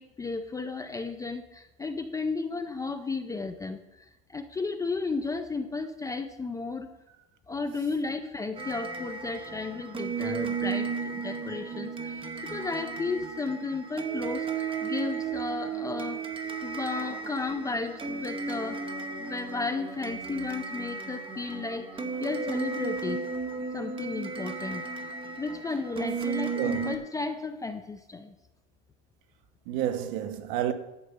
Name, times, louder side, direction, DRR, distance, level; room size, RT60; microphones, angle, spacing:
voice 1, 0.0-4.0 4.3-6.9 7.5-16.2 16.6-18.8 19.2-23.3 23.7-24.8 25.4-28.3, left 4 dB, 10° left, 0.4 m, -34 dB
sound 1, 8.6-27.0, right 5 dB, 15° right, 0.9 m, -34 dB
voice 2, 26.6-26.9 29.7-30.7, right 11 dB, 65° right, 1.1 m, -30 dB
11.0 x 5.3 x 8.3 m
supercardioid pair, 145°, 31 cm